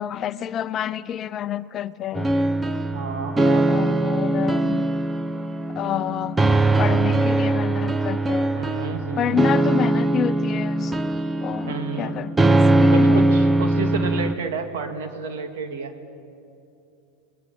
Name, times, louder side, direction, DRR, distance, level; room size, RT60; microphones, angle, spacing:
voice 1, 0.0-2.3 3.6-4.8 5.8-6.4 6.8-8.5 9.1-10.9 11.4-13.3, left 10 dB, 40° left, 14 dB, 0.7 m, -28 dB
sound 1, 2.2-14.3, right 2 dB, 15° right, 0.8 m, -21 dB
voice 2, 2.9-3.7 8.5-9.4 11.7-12.1 12.9-15.9, right 5 dB, 75° right, 6 dB, 2.3 m, -31 dB
29.0 x 20.0 x 7.1 m, 2.7 s
hypercardioid pair, 95°, 0 cm